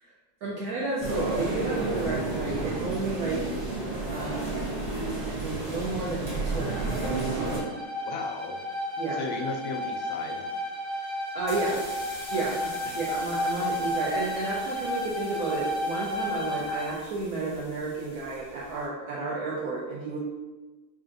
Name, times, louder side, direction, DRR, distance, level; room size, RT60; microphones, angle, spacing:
voice 1, 0.4-3.4 4.1-4.7 5.2-7.4 9.0-9.2 11.3-11.8 12.3-20.2, right 3 dB, 85° right, -5 dB, 0.8 m, -32 dB
sound 1, 1.0-7.6, right 2 dB, 40° right, 0.7 m, -31 dB
Bowed string instrument, 6.5-17.0, left 1 dB, 40° left, 0.6 m, -32 dB
voice 2, 8.0-8.6 9.1-10.4 11.7-11.8 12.3-12.6 12.9-13.0, left 3 dB, 75° left, 2 dB, 1.3 m, -36 dB
sound 2, 11.4-18.8, left 1 dB, 55° left, 2.0 m, -46 dB
5.4 x 2.5 x 2.5 m, 1.2 s
omnidirectional pair, 2.3 m